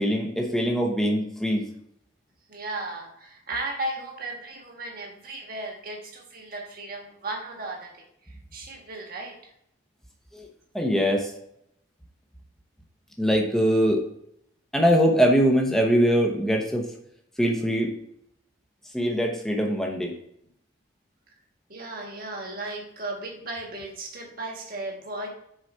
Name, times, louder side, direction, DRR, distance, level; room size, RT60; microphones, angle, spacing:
voice 1, 0.0-1.7 10.3-10.5 10.7-11.3 13.2-14.0 14.7-16.9 17.4-17.9 18.9-20.1, equal, ahead, 1 dB, 0.9 m, -22 dB
voice 2, 2.5-9.5 21.7-25.3, right 2 dB, 45° right, 0 dB, 1.6 m, -35 dB
6.4 x 4.9 x 4.3 m, 0.74 s
head